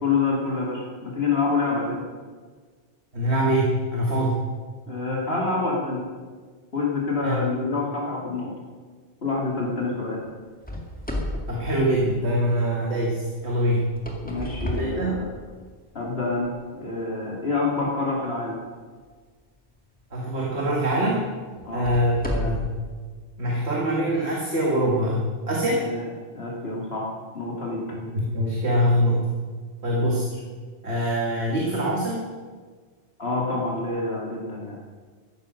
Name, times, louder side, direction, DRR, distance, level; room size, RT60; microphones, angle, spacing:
voice 1, 0.0-2.0 4.9-6.0 6.7-8.5 9.2-10.2 14.2-15.3 15.9-18.6 21.6-21.9 25.8-26.0 26.3-27.1 27.3-27.8 30.0-30.2 33.2-34.8, left 3 dB, 60° left, -3 dB, 2.6 m, -27 dB
voice 2, 3.1-4.4 7.2-7.4 11.5-13.9 14.7-15.2 20.1-21.2 21.7-22.7 23.4-25.9 27.9-29.3 29.8-30.3 30.8-32.2, equal, 65° right, -3 dB, 2.2 m, -24 dB
sound 1, 10.6-12.6 13.8-15.7 16.4-16.5 17.2-17.3 19.9-20.1 20.6-20.7 21.6-22.8, left 1 dB, 5° left, 2.1 m, -32 dB
14.5 x 10.0 x 6.4 m, 1.5 s
omnidirectional pair, 1.2 m